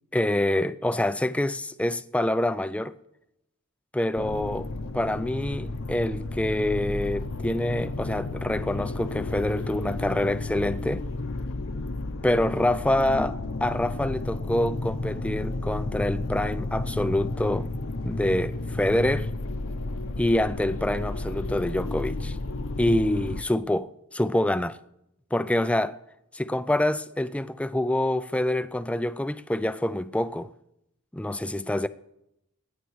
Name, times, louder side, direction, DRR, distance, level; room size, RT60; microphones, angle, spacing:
voice 1, 0.1-3.0 3.9-4.7 4.9-11.0 12.2-13.3 13.6-17.7 18.0-19.3 20.2-22.4 22.8-24.8 25.3-26.0 26.3-30.5 31.1-31.9, left 1 dB, 5° left, 0.4 m, -26 dB
sound 1, 4.2-23.4, left 2 dB, 60° left, 0.7 m, -32 dB
26.0 x 9.4 x 3.2 m
head